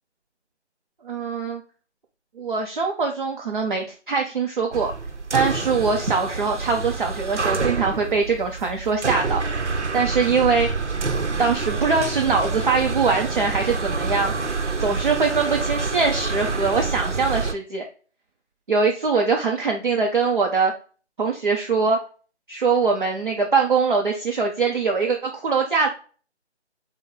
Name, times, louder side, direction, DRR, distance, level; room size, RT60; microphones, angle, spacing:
voice 1, 1.0-1.6 2.4-4.9 5.3-10.7 11.4-14.3 14.8-17.8 18.7-20.7 21.2-22.0 22.5-25.9, right 4 dB, 45° right, 0 dB, 0.8 m, -22 dB
sound 1, 4.7-17.5, right 4 dB, 85° right, 0.9 m, -27 dB
6.2 x 2.3 x 3.6 m, 0.38 s
figure-of-eight pair, 170°, 34 cm